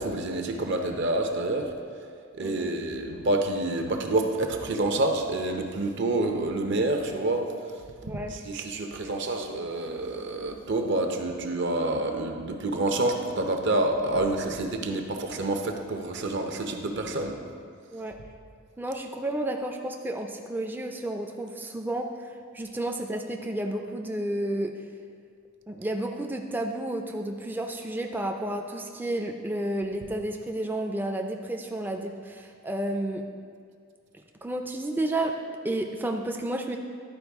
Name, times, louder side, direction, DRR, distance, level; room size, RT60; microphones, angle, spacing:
voice 1, 0.0-1.7 2.4-7.5 8.3-17.4, right 2 dB, 55° right, 4 dB, 0.7 m, -28 dB
voice 2, 2.4-2.8 8.0-8.4 17.9-18.2 18.8-22.3 22.5-24.7 25.7-33.2 34.4-35.3 35.6-36.8, right 1 dB, 10° right, 3 dB, 0.3 m, -31 dB
11.5 x 4.7 x 3.5 m, 2.2 s
head